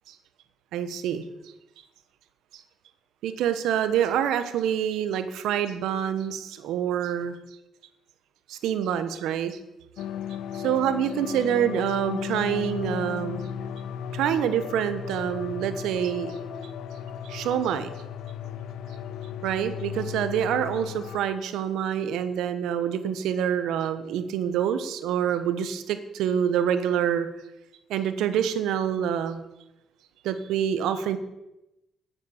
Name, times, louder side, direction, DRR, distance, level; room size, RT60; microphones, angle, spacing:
voice 1, 0.7-1.2 2.5-2.6 3.2-7.4 8.5-9.6 10.6-13.4 14.1-16.4 17.2-17.9 19.4-27.3 27.9-29.4 30.2-31.2, right 9 dB, 85° right, 11 dB, 1.1 m, -26 dB
sound 1, 10.0-21.2, left 8 dB, 80° left, 0.7 m, -35 dB
10.0 x 9.4 x 7.1 m, 0.92 s
cardioid pair, 90°, 0 cm